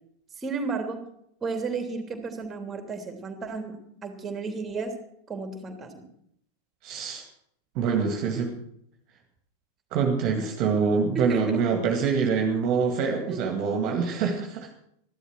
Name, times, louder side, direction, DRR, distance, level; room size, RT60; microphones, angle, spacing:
voice 1, 0.4-1.0 1.4-5.0 5.3-6.0 11.1-11.6 13.3-13.4, right 4 dB, 20° right, 5 dB, 3.1 m, -33 dB
voice 2, 6.8-7.3 7.8-8.6 9.9-14.7, right 5 dB, 40° right, 3 dB, 2.1 m, -25 dB
14.5 x 12.0 x 6.3 m, 0.70 s
figure-of-eight pair, 90°, 0 cm